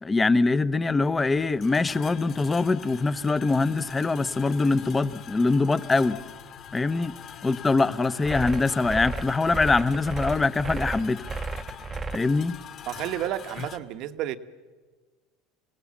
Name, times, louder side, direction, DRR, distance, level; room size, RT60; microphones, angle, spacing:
voice 1, 0.0-6.2 6.7-7.1 7.4-11.3 12.1-12.5, left 3 dB, 15° left, 16 dB, 0.7 m, -23 dB
sound 1, 0.6-13.8, left 8 dB, 45° left, 1.9 m, -44 dB
sound 2, 8.2-12.2, right 3 dB, 20° right, 0.8 m, -33 dB
voice 2, 12.9-14.4, right 12 dB, 55° right, 11 dB, 1.1 m, -31 dB
28.0 x 17.5 x 7.2 m, 1.4 s
supercardioid pair, 120°, 0 cm